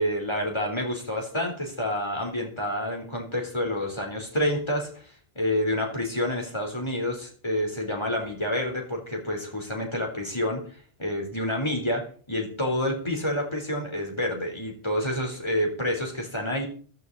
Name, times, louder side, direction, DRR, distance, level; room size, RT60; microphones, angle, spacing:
voice 1, 0.0-5.1 5.4-10.6 11.0-16.7, left 1 dB, 25° left, 1 dB, 3.8 m, -28 dB
15.0 x 12.0 x 4.1 m, 0.42 s
omnidirectional pair, 1.0 m